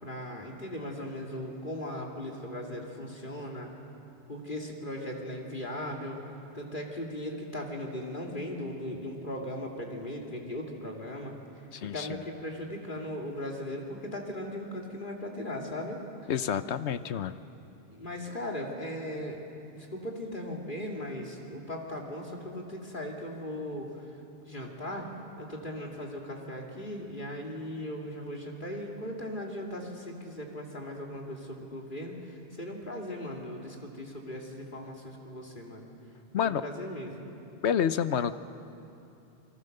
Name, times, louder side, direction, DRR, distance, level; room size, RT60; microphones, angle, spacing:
voice 1, 0.0-3.7 4.3-6.2 6.5-11.4 11.8-16.0 17.9-19.4 19.7-24.2 24.5-25.1 25.4-35.9 36.4-37.3, left 1 dB, 45° left, 0 dB, 2.8 m, -38 dB
voice 2, 11.7-12.2 16.3-17.4 36.3-36.6 37.6-38.3, left 8 dB, 80° left, 12 dB, 1.1 m, -29 dB
28.0 x 22.0 x 6.7 m, 2.8 s
omnidirectional pair, 1.1 m